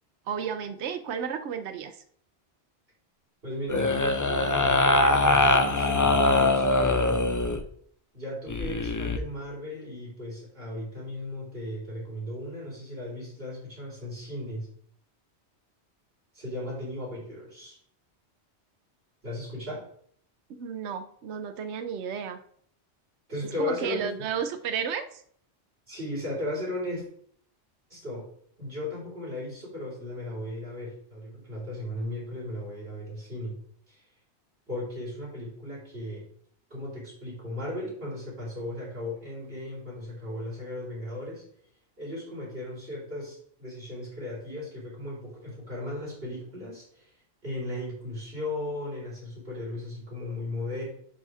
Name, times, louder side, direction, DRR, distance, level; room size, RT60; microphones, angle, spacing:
voice 1, 0.3-2.0 20.6-22.4 23.6-25.2, right 7 dB, 80° right, 8 dB, 1.0 m, -32 dB
voice 2, 3.4-7.2 8.1-14.7 16.3-17.8 19.2-19.8 23.3-24.1 25.9-27.0 27.9-28.3 28.6-33.5 33.9-34.0 34.7-36.2 36.7-41.4 42.0-47.1 47.4-50.8, left 1 dB, 60° right, -6 dB, 4.6 m, -36 dB
sound 1, 3.7-7.6 8.5-9.2, left 2 dB, 25° left, 0.4 m, -22 dB
10.5 x 4.2 x 4.8 m, 0.62 s
omnidirectional pair, 1.1 m